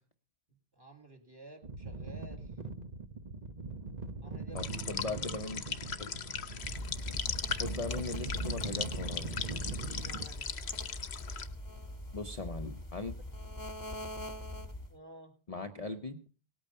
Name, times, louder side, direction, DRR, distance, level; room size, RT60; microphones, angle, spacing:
voice 1, 0.5-2.6 4.2-5.4 9.6-10.5 14.9-15.4, right 2 dB, 20° right, 5 dB, 2.4 m, -53 dB
sound 1, 1.6-10.3, right 3 dB, 40° right, 1.0 m, -42 dB
voice 2, 4.5-5.6 6.0-6.2 7.6-9.3 12.1-13.1 15.5-16.2, left 3 dB, 35° left, 5 dB, 0.9 m, -39 dB
sound 2, 4.6-11.5, left 7 dB, 65° left, 1.2 m, -39 dB
sound 3, 6.6-15.0, left 1 dB, 15° left, 1.5 m, -42 dB
18.0 x 8.7 x 5.4 m, 0.36 s
omnidirectional pair, 1.2 m